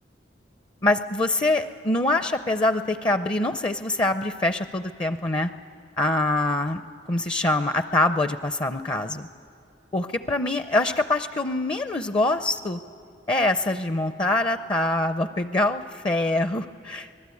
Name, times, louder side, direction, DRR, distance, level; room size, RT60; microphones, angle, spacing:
voice 1, 0.8-5.5 6.0-6.8 7.1-9.3 9.9-12.8 13.3-17.2, left 2 dB, 30° left, 10 dB, 0.5 m, -24 dB
25.0 x 19.0 x 8.4 m, 2.6 s
head